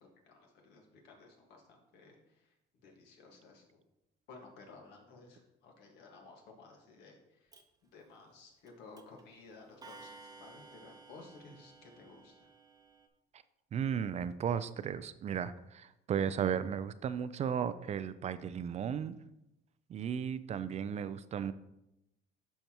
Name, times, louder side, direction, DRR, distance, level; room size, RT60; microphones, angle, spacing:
voice 1, 0.0-2.6 2.8-3.8 4.3-12.5, left 3 dB, 85° left, 1 dB, 1.7 m, -56 dB
Clock, 7.5-7.6 8.7-8.8 9.0-9.2 9.8-13.1, right 3 dB, 20° right, 0.7 m, -55 dB
voice 2, 13.7-19.2 19.9-21.5, right 8 dB, 40° right, 14 dB, 0.4 m, -35 dB
12.0 x 4.5 x 3.0 m, 0.88 s
cardioid pair, 110°, 17 cm